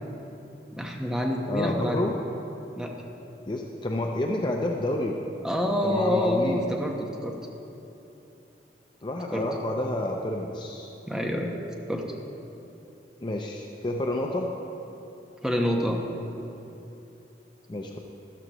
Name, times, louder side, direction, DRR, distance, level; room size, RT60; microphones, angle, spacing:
voice 1, 0.7-2.1 2.7-2.9 5.4-7.4 9.3-9.4 11.1-11.5 11.9-12.0 15.4-16.0, left 1 dB, 5° right, 0 dB, 1.0 m, -27 dB
voice 2, 1.5-2.1 3.5-5.3 5.8-6.7 9.0-10.9 13.2-14.5 17.7-18.0, left 1 dB, 25° left, 1 dB, 0.5 m, -29 dB
13.0 x 12.0 x 3.0 m, 3.0 s
head